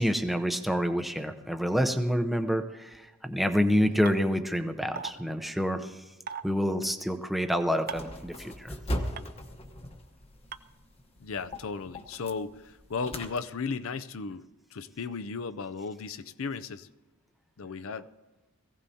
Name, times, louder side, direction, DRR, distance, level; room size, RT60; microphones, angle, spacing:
voice 1, 0.0-5.9 6.4-8.7, equal, ahead, 6 dB, 0.7 m, -28 dB
sound 1, 4.1-4.2 5.0-5.1 6.3-6.4 7.9-8.1 9.2-9.3 10.5-10.6, right 6 dB, 40° right, 0.5 m, -36 dB
sound 2, 7.9-13.4, equal, 25° left, 1.0 m, -39 dB
voice 2, 11.2-14.5 14.7-16.9 17.6-18.1, left 5 dB, 65° left, 13 dB, 0.5 m, -35 dB
21.5 x 16.5 x 2.8 m, 1.1 s
head